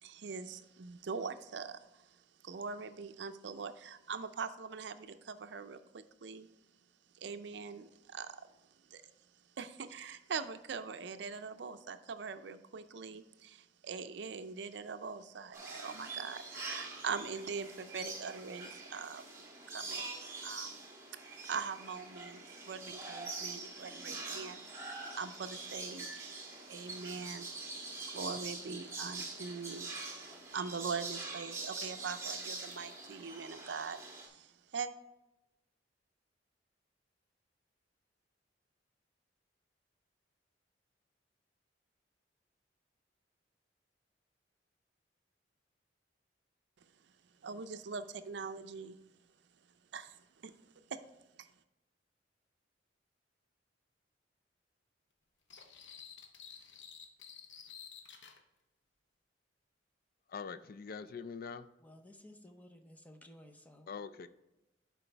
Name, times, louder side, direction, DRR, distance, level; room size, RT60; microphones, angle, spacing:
voice 1, 0.0-6.5 7.1-8.5 8.9-9.0 9.6-20.8 21.1-26.4 26.7-34.9 47.4-49.0 49.9-50.5 50.9-51.0 51.4-51.5, right 5 dB, 70° right, 0.5 m, -43 dB
sound 1, 15.5-34.3, right 3 dB, 15° right, 1.4 m, -44 dB
sound 2, 55.5-58.4, left 7 dB, 85° left, 0.9 m, -52 dB
voice 2, 60.3-61.7 63.9-64.3, left 5 dB, 55° left, 0.4 m, -43 dB
voice 3, 61.8-63.9, left 1 dB, 10° left, 0.7 m, -56 dB
11.0 x 4.7 x 3.3 m
head